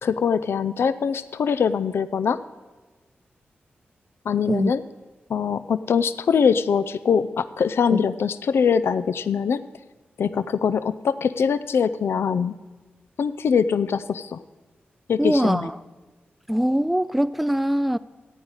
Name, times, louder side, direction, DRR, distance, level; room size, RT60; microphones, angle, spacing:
voice 1, 0.0-2.4 4.3-4.8 5.3-9.6 10.2-12.5 13.2-14.4 15.1-15.7, left 6 dB, 75° left, 13 dB, 0.4 m, -23 dB
voice 2, 15.2-15.8 16.5-18.0, equal, 5° right, 14 dB, 0.3 m, -22 dB
14.5 x 8.9 x 4.8 m, 1.3 s
cardioid pair, 50°, 4 cm